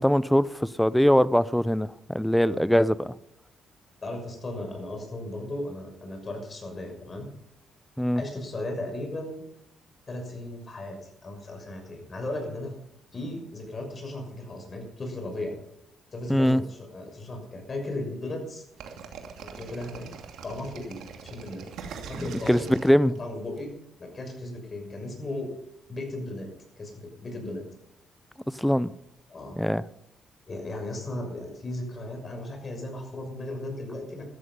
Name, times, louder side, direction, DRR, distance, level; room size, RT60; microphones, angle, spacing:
voice 1, 0.0-3.1 8.0-8.2 16.3-16.6 22.2-23.2 28.6-28.9 29.6-29.8, equal, 5° left, 0.6 m, -22 dB
voice 2, 4.0-7.3 8.1-9.4 10.1-12.8 13.1-15.6 16.1-18.6 19.4-20.1 20.4-21.7 22.1-22.7 23.2-23.7 24.0-25.5 25.9-26.5 26.8-27.6 29.3-29.6 30.5-34.2, left 1 dB, 35° left, 6.4 m, -36 dB
sound 1, 18.8-23.6, right 6 dB, 80° right, 2.5 m, -42 dB
14.0 x 14.0 x 5.6 m
cardioid pair, 90°, 0 cm